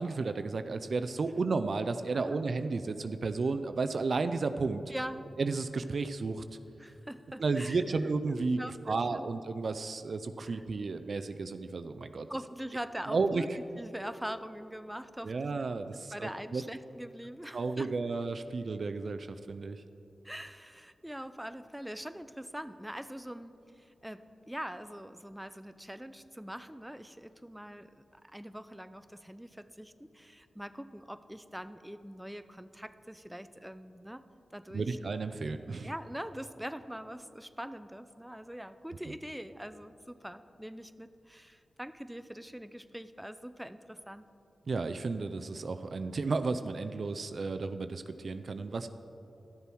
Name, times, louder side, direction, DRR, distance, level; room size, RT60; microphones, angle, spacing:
voice 1, 0.0-4.8 5.4-6.4 7.4-12.3 13.1-13.4 15.2-16.6 17.5-19.8 34.7-35.9 44.7-48.9, right 4 dB, 60° right, 9 dB, 0.4 m, -33 dB
voice 2, 4.9-5.3 6.8-7.8 8.3-9.2 10.4-10.6 12.3-15.5 16.1-17.9 20.2-34.2 34.5-35.0 35.8-44.3, equal, 5° right, 12 dB, 0.4 m, -43 dB
12.5 x 6.9 x 4.5 m, 2.8 s
cardioid pair, 55°, 0 cm